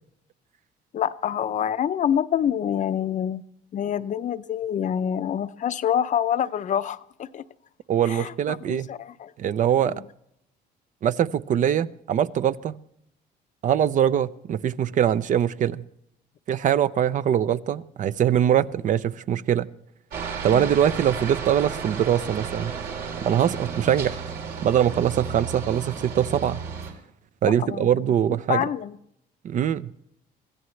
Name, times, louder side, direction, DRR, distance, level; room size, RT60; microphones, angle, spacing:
voice 1, 0.9-3.4 3.7-7.4 8.1-9.3 20.5-20.7 27.6-27.9 28.5-29.0, left 9 dB, 45° left, 0.6 m, -26 dB
voice 2, 7.9-8.9 9.4-10.0 11.0-12.8 13.6-15.8 16.5-19.7 20.4-22.7 23.2-24.2 24.6-26.6 27.4-28.7 29.4-29.9, right 9 dB, 50° right, 0.6 m, -22 dB
Aircraft, 20.1-26.9, right 6 dB, 70° right, 3.5 m, -33 dB
23.5 x 15.5 x 3.2 m
cardioid pair, 110°, 17 cm